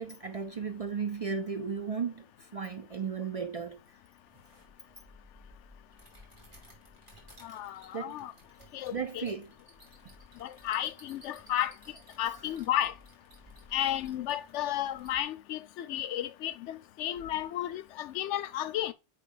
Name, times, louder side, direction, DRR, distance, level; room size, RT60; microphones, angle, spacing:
voice 1, 0.0-3.8 7.9-8.2 8.9-9.5 12.2-12.4, right 6 dB, 50° right, 0.4 m, -35 dB
sound 1, 4.3-15.2, equal, 25° right, 2.6 m, -57 dB
voice 2, 7.4-8.3 8.7-9.2 10.4-11.7 12.2-12.9 13.7-18.9, left 12 dB, 90° left, 0.9 m, -33 dB
6.4 x 5.0 x 3.8 m
omnidirectional pair, 1.2 m